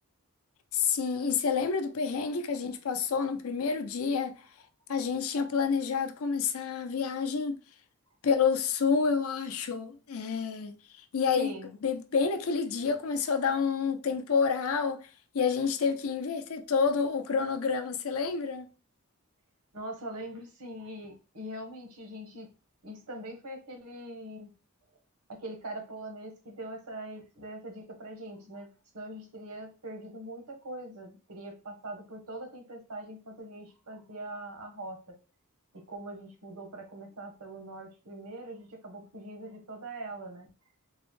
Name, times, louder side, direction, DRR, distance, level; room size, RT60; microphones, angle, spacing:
voice 1, 0.7-4.5 4.9-7.6 8.2-11.5 11.8-18.7, left 5 dB, 70° left, 0.5 m, -29 dB
voice 2, 11.4-11.7 19.7-22.5 22.8-24.5 25.3-28.7 28.9-35.2 35.7-40.5, right 1 dB, 80° right, 1.0 m, -42 dB
3.8 x 2.1 x 3.0 m
head